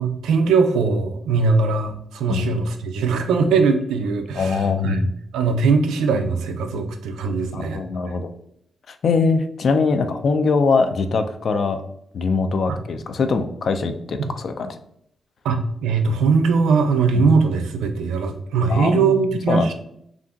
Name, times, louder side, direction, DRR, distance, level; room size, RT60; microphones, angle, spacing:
voice 1, 0.0-5.0 5.3-7.8 8.1-8.2 12.7-12.8 14.2-14.3 15.4-19.7, right 4 dB, 90° right, 5 dB, 0.3 m, -20 dB
voice 2, 4.4-5.1 7.5-8.3 8.9-11.8 12.1-14.8 17.1-17.3 18.7-19.1 19.5-19.7, left 4 dB, 65° left, 8 dB, 0.3 m, -22 dB
2.9 x 2.5 x 2.3 m, 0.71 s
cardioid pair, 60°, 0 cm